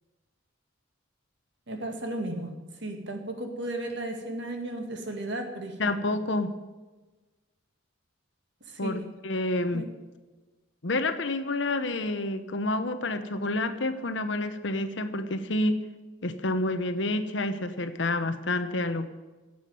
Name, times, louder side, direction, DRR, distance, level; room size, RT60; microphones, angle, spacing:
voice 1, 1.7-2.5 2.8-6.0 8.7-9.0 9.7-9.9, right 1 dB, 60° right, 4 dB, 2.2 m, -34 dB
voice 2, 5.8-6.5 8.8-9.9 10.8-15.8 16.2-19.1, left 2 dB, 65° left, 10 dB, 1.1 m, -29 dB
11.0 x 8.2 x 9.3 m, 1.3 s
head